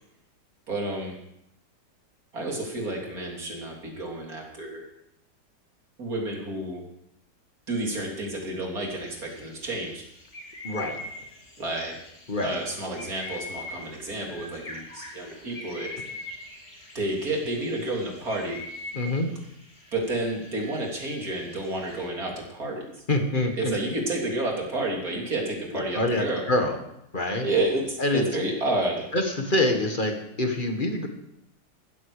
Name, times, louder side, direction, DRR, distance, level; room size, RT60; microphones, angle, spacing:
voice 1, 0.7-1.2 2.3-4.8 6.0-6.8 7.7-10.0 11.6-11.9 12.4-16.0 17.0-18.6 19.9-22.8 23.5-26.4 27.4-29.1, right 2 dB, 55° right, -1 dB, 3.7 m, -30 dB
sound 1, 8.8-22.1, left 2 dB, 50° left, 3.5 m, -43 dB
voice 2, 10.6-11.0 12.3-12.6 18.9-19.3 23.1-23.7 26.0-26.8 27.1-27.5 28.0-28.2 29.1-31.1, left 1 dB, 30° left, 4 dB, 1.7 m, -25 dB
15.5 x 13.5 x 5.0 m, 0.79 s
omnidirectional pair, 1.9 m